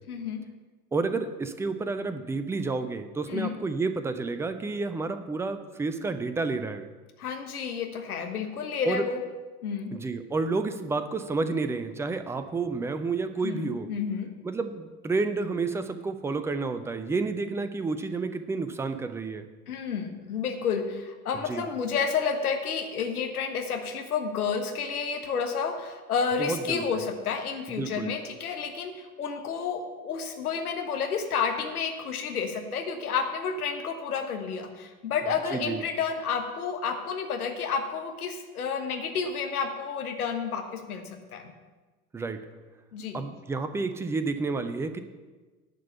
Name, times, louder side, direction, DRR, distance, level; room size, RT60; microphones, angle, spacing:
voice 1, 0.1-0.4 3.3-3.5 7.2-9.2 9.6-9.9 13.4-14.3 19.7-41.0 41.3-41.5 42.9-43.2, left 6 dB, 70° left, 5 dB, 1.5 m, -30 dB
voice 2, 0.9-6.9 8.8-9.0 9.9-13.9 14.4-19.5 21.5-21.7 26.4-26.8 27.7-28.1 35.5-35.8 42.1-42.4 43.1-45.0, right 3 dB, 5° right, 10 dB, 0.4 m, -30 dB
11.0 x 5.3 x 8.2 m, 1.3 s
figure-of-eight pair, 75°, 46 cm